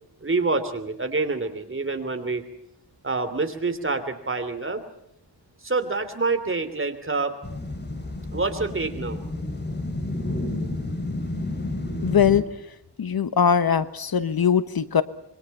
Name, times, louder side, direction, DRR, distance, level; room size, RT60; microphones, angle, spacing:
voice 1, 0.2-2.4 3.0-4.8 5.6-7.4 8.3-9.2, right 3 dB, 30° right, 8 dB, 3.1 m, -27 dB
sound 1, 7.4-12.4, left 2 dB, 25° left, 2.8 m, -30 dB
voice 2, 12.0-12.6 13.0-15.0, left 7 dB, 60° left, 13 dB, 1.2 m, -21 dB
26.5 x 23.5 x 5.6 m, 0.77 s
wide cardioid pair, 120°, 40 cm